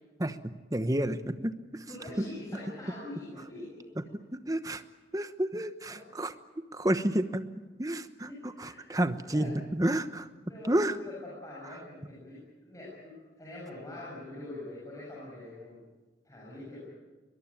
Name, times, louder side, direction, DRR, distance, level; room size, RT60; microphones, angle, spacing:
voice 1, 0.2-1.8 2.2-2.3 4.0-4.1 4.3-4.8 5.1-6.3 6.7-7.5 7.8-10.3 10.6-11.0, right 1 dB, 20° right, 10 dB, 1.0 m, -30 dB
voice 2, 1.9-3.7 5.9-6.0 8.2-8.9 9.2-9.5 10.4-15.8 16.2-16.8, left 2 dB, 20° left, -7 dB, 7.8 m, -44 dB
22.5 x 22.0 x 9.1 m, 1.2 s
head